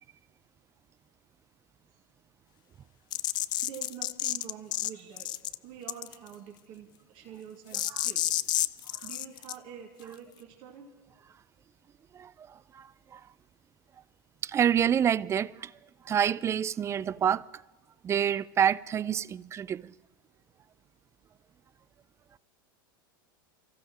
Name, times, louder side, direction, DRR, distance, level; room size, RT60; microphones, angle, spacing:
sound 1, 3.1-4.9 5.2-5.6 5.9-6.3 7.7-9.5, left 14 dB, 40° left, 0.4 m, -30 dB
voice 1, 3.6-5.3 5.6-8.4 9.0-10.9, right 8 dB, 50° right, 2.3 m, -46 dB
voice 2, 12.7-13.2 14.4-15.7 16.1-17.4 18.0-19.9, right 9 dB, 25° right, 0.4 m, -27 dB
29.5 x 15.0 x 3.1 m
hypercardioid pair, 95°, 12 cm